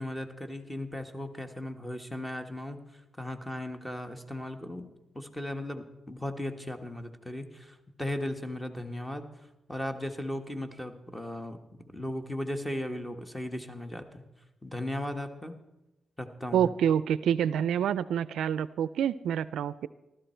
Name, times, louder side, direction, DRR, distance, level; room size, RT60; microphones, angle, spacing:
voice 1, 0.0-2.8 3.2-4.9 5.1-9.3 9.7-11.6 11.9-14.2 14.6-15.6 16.2-16.7, left 1 dB, 10° left, 7 dB, 1.3 m, -36 dB
voice 2, 16.5-19.9, right 9 dB, 85° right, 17 dB, 0.4 m, -27 dB
15.0 x 12.5 x 4.5 m, 0.99 s
cardioid pair, 90°, 0 cm